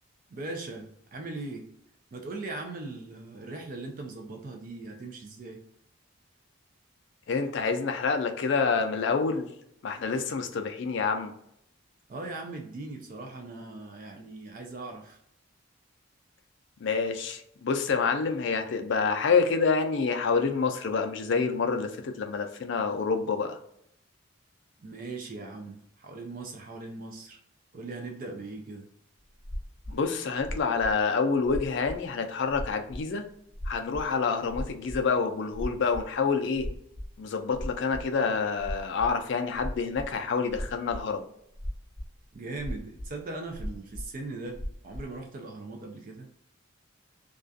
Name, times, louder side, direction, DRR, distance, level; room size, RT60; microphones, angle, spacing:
voice 1, 0.3-1.7 2.1-5.6 12.1-15.2 24.8-27.4 27.7-28.9 42.3-46.3, right 3 dB, 40° right, 3 dB, 0.3 m, -39 dB
voice 2, 7.3-9.5 9.8-11.3 16.8-23.6 29.9-33.2 33.7-36.7 37.2-41.3, left 5 dB, 60° left, 6 dB, 0.3 m, -27 dB
sound 1, 29.4-30.0 30.3-30.9 31.4-32.0 32.5-33.3 33.5-35.1 35.5-36.1 36.3-37.1 37.5-38.0 38.6-39.1 39.5-40.1 40.5-41.1 41.5-42.1 42.3-43.1 43.5-44.1 44.5-45.1, equal, 70° right, 1.2 m, -36 dB
2.3 x 2.2 x 2.5 m, 0.74 s
head